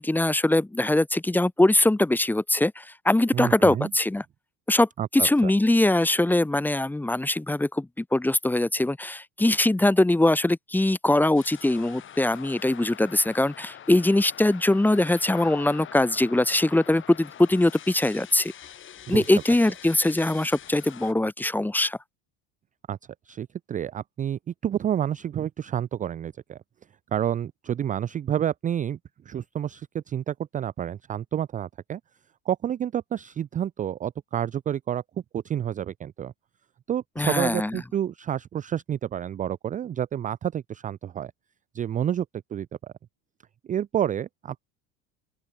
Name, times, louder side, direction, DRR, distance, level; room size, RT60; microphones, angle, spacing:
voice 1, 0.0-4.2 4.7-18.5 19.1-22.0 37.2-37.8, left 1 dB, 5° left, 1.2 m, -22 dB
voice 2, 3.3-3.9 5.0-5.5 19.1-19.2 22.9-23.0 23.3-26.6 27.1-29.0 29.3-32.0 32.5-35.0 35.3-36.3 36.9-41.3 41.7-42.3 42.5-42.9 43.7-44.7, right 10 dB, 25° right, 0.5 m, -29 dB
sound 1, 11.4-21.1, left 10 dB, 35° left, 3.3 m, -45 dB
open air
cardioid pair, 130°, 35 cm